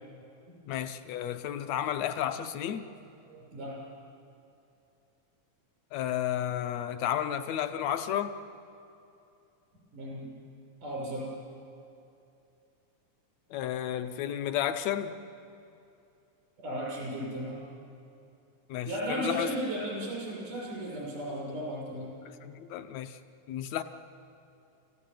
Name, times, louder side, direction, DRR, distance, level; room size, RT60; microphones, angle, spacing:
voice 1, 0.7-2.9 5.9-8.4 13.5-15.2 18.7-19.5 22.3-23.2 23.5-23.8, left 10 dB, 70° left, 10 dB, 1.9 m, -32 dB
voice 2, 3.3-3.8 9.9-10.3 10.8-11.3 16.6-17.7 18.9-22.1, right 1 dB, 85° right, -5 dB, 8.2 m, -35 dB
28.5 x 15.5 x 9.3 m, 2.7 s
omnidirectional pair, 3.6 m